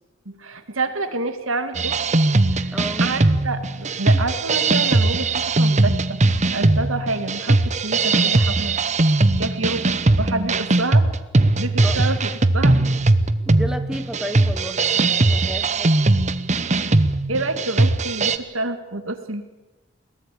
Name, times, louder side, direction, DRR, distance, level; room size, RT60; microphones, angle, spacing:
voice 1, 0.3-2.0 2.5-8.8 9.4-11.0 11.5-12.8 17.3-19.5, right 2 dB, 85° right, 9 dB, 2.2 m, -28 dB
sound 1, 1.8-18.4, right 2 dB, 35° right, 0.9 m, -19 dB
voice 2, 2.7-3.1 11.8-12.0 13.4-15.9, right 1 dB, 5° right, 7 dB, 1.2 m, -32 dB
21.5 x 18.0 x 8.6 m, 1.1 s
head